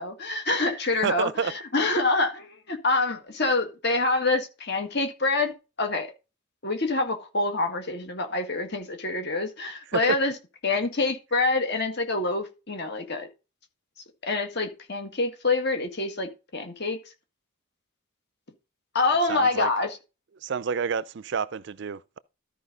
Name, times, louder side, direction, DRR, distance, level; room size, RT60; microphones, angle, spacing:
voice 1, 0.0-6.1 6.6-10.3 10.6-13.3 14.2-17.0 18.9-20.0, left 3 dB, 50° left, 1.9 m, -26 dB
voice 2, 1.0-1.5 9.9-10.2 19.3-19.7 20.4-22.2, right 6 dB, 55° right, 0.4 m, -29 dB
13.0 x 5.0 x 3.9 m
head